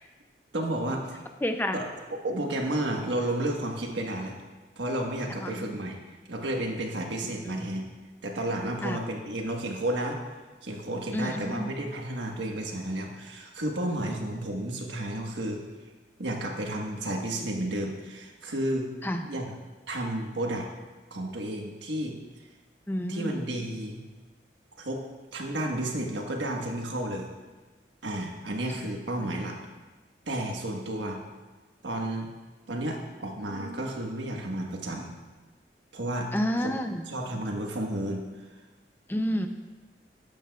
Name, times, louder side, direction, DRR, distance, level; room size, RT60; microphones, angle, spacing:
voice 1, 0.5-1.2 1.7-4.4 4.8-6.0 6.3-7.8 8.2-10.2 10.6-15.6 16.2-18.9 19.2-19.5 19.9-20.7 21.1-22.2 23.1-24.0 24.8-25.0 25.3-27.3 28.0-29.6 30.3-31.2 31.8-32.3 32.7-35.1 35.9-36.3 36.6-36.7 37.1-38.2, right 1 dB, 90° right, 1 dB, 1.4 m, -32 dB
voice 2, 1.4-1.8 5.4-5.7 7.4-7.7 8.8-9.0 11.1-11.7 19.0-19.2 22.9-23.4 36.3-37.1 39.1-39.5, equal, 10° left, 6 dB, 0.5 m, -30 dB
13.5 x 10.0 x 2.4 m, 1.3 s
head